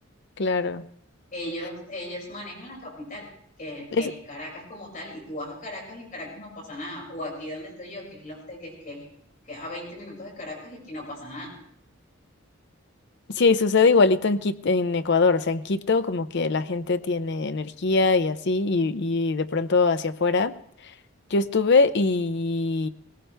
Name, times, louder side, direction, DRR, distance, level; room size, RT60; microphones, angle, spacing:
voice 1, 0.4-0.9 3.9-4.1 13.3-20.6 20.8-20.9 21.3-22.9, left 4 dB, 55° left, 11 dB, 0.6 m, -22 dB
voice 2, 1.3-3.3 3.6-9.1 9.4-11.5, left 1 dB, 40° left, -4 dB, 6.2 m, -37 dB
20.0 x 19.0 x 3.4 m, 0.67 s
head